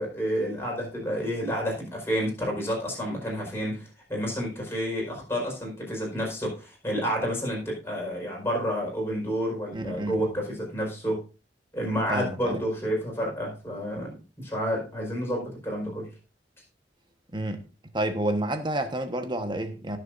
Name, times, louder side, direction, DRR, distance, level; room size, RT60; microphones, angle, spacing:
voice 1, 0.0-11.2 11.7-16.1, equal, 15° left, 4.9 m, -30 dB
voice 2, 9.7-10.3 12.1-12.6 17.3-17.6 17.9-20.0, right 1 dB, 25° right, 1.3 m, -29 dB
18.5 x 7.0 x 2.6 m
head